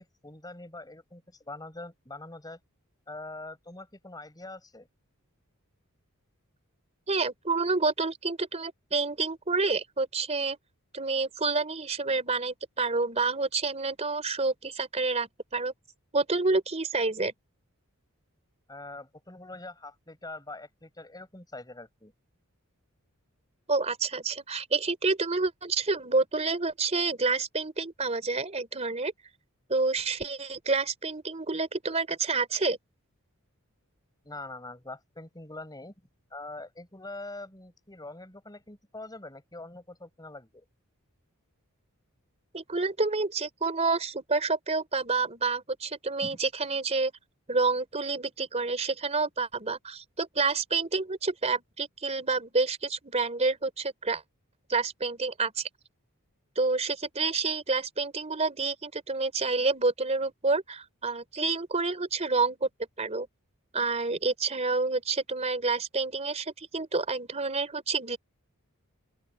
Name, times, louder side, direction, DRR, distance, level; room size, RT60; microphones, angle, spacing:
voice 1, 0.0-2.6 3.1-4.9 18.7-22.1 34.2-35.9 36.3-40.6 46.2-46.4, left 2 dB, 20° left, 6.3 m, -43 dB
voice 2, 7.1-10.6 10.9-15.7 16.1-17.3 23.7-29.1 29.7-32.8 42.5-47.1 47.5-54.2 54.7-55.7 56.6-62.7 63.0-63.3 63.7-68.2, right 3 dB, 30° right, 3.6 m, -28 dB
open air
head